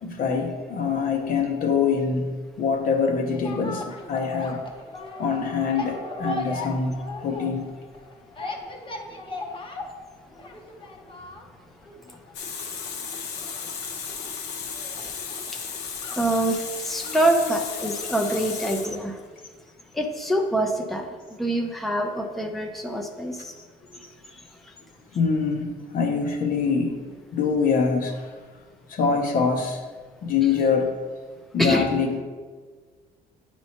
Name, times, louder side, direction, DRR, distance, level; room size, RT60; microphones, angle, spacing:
voice 1, 0.0-4.6 5.2-7.7 17.0-17.2 25.1-28.3 28.9-29.8 30.2-31.0 31.5-32.2, left 5 dB, 55° left, 3 dB, 0.9 m, -24 dB
sound 1, 3.3-18.5 18.8-18.9, left 2 dB, 30° left, 0.9 m, -38 dB
Water tap faucet, 12.3-19.4, left 6 dB, 80° left, 0.9 m, -34 dB
voice 2, 16.2-19.2 19.9-23.5 31.6-31.8, right 1 dB, ahead, 2 dB, 0.6 m, -25 dB
9.3 x 4.4 x 2.9 m, 1.5 s
cardioid pair, 110°, 17 cm